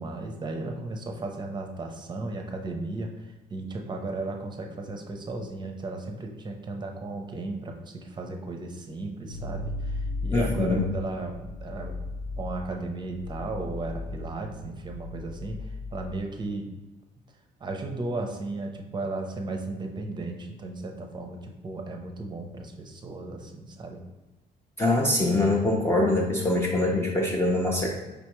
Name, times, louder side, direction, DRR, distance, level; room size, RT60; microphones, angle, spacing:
voice 1, 0.0-3.1 3.5-11.9 12.4-15.6 15.9-16.7 17.6-24.0, right 2 dB, 25° right, 3 dB, 0.6 m, -35 dB
sound 1, 9.3-16.2, left 2 dB, 55° left, 1.0 m, -36 dB
voice 2, 10.3-10.9 24.8-27.9, left 2 dB, 15° left, -2 dB, 0.6 m, -23 dB
5.1 x 3.4 x 3.1 m, 1.1 s
cardioid pair, 110°, 17 cm